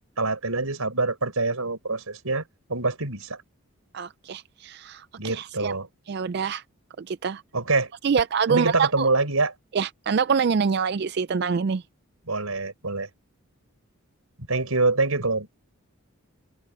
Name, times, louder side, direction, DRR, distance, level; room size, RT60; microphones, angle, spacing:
voice 1, 0.2-2.4 2.7-3.4 5.2-5.9 7.5-7.9 8.5-9.5 12.3-13.1 14.5-15.5, right 3 dB, 90° right, 5.7 m, -25 dB
voice 2, 3.9-5.7 6.1-6.6 7.1-7.4 8.0-9.1 9.7-11.8, right 6 dB, 50° right, 0.4 m, -25 dB
open air
head